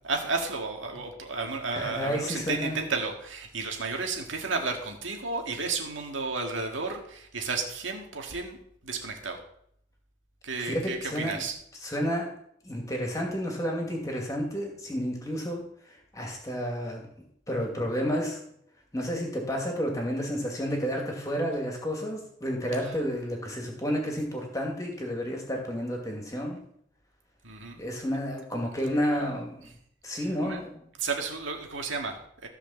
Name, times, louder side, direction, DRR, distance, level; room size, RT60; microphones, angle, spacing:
voice 1, 0.0-8.6 8.8-9.4 10.4-11.6 22.8-22.9 27.4-27.8 29.1-29.3 30.4-30.6 31.0-32.5, right 4 dB, 85° right, 2 dB, 2.0 m, -32 dB
voice 2, 1.7-2.8 10.6-11.4 11.8-12.3 12.6-15.6 15.9-17.1 17.5-18.4 18.9-26.6 27.8-29.7 30.0-30.8, equal, 15° left, 0 dB, 2.3 m, -31 dB
14.5 x 5.0 x 7.3 m, 0.69 s
head